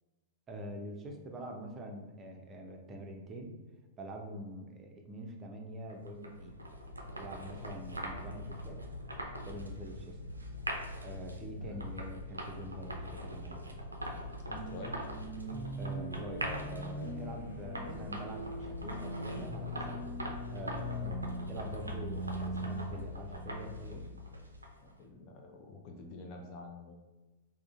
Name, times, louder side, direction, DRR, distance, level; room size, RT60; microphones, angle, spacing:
voice 1, 0.5-3.5 4.0-6.6 7.2-8.8 9.4-10.2 11.0-13.6 15.8-20.0 20.5-24.1, equal, 25° right, 2 dB, 0.5 m, -45 dB
sound 1, 5.9-24.9, equal, 90° right, 0.4 m, -42 dB
sound 2, 14.5-24.4, equal, 65° left, 1.1 m, -41 dB
voice 2, 14.5-14.9 24.8-27.0, left 2 dB, 40° left, 2 dB, 0.4 m, -48 dB
3.6 x 2.1 x 2.5 m, 1.2 s
figure-of-eight pair, 100°, 0 cm